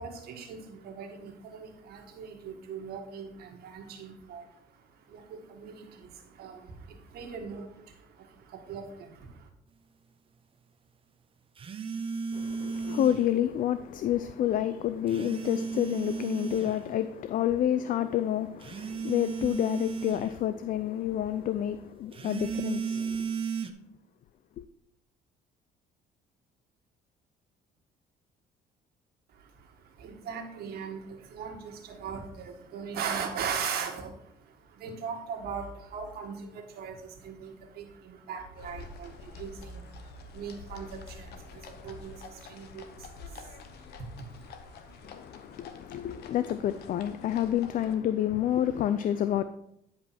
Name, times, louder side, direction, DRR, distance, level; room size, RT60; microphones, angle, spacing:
voice 1, 0.0-9.5 29.3-46.4 47.2-47.4 48.3-48.4, right 6 dB, 65° right, 1.8 m, -40 dB
sound 1, 11.6-13.3 15.1-16.8 18.6-20.3 22.1-23.7, right 5 dB, 30° right, 0.8 m, -34 dB
voice 2, 12.3-23.2 24.6-24.7 45.0-49.4, left 11 dB, 55° left, 0.4 m, -29 dB
sound 2, 38.6-47.9, left 5 dB, 70° left, 0.9 m, -48 dB
9.9 x 5.2 x 4.3 m
cardioid pair, 110°, 17 cm